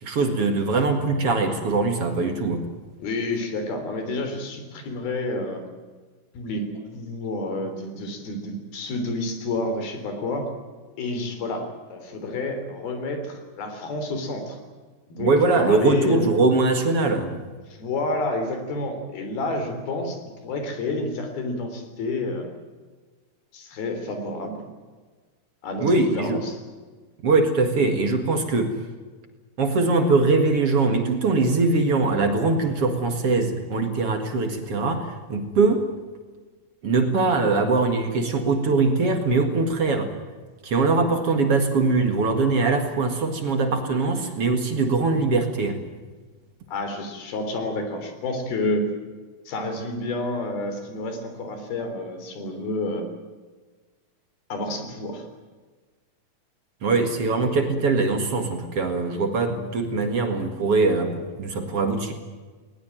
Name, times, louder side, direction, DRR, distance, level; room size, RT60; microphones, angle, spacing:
voice 1, 0.0-2.7 15.2-17.4 25.8-26.4 27.2-28.7 29.6-35.9 36.8-40.1 40.6-45.8 56.8-62.1, right 3 dB, 45° right, 6 dB, 2.3 m, -22 dB
voice 2, 3.0-5.6 6.3-10.5 11.0-14.6 15.1-16.4 17.7-22.5 23.5-24.7 25.6-26.6 46.7-48.9 49.5-53.1 54.5-55.3, left 2 dB, 70° left, 6 dB, 5.3 m, -29 dB
20.0 x 19.5 x 9.1 m, 1.4 s
omnidirectional pair, 4.5 m